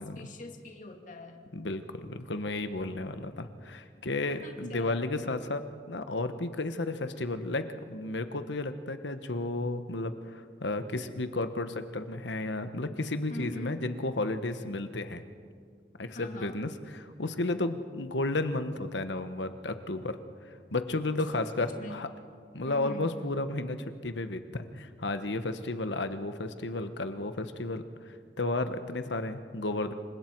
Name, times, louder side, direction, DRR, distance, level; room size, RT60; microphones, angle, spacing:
voice 1, 0.0-1.4 4.4-5.0 13.3-13.8 16.1-16.6 21.6-22.0 22.7-23.1, left 2 dB, 45° left, 3 dB, 2.4 m, -43 dB
voice 2, 1.5-15.2 16.0-20.2 20.7-22.1 22.5-29.9, left 2 dB, 80° left, 9 dB, 1.2 m, -33 dB
28.0 x 24.5 x 4.6 m, 2.1 s
head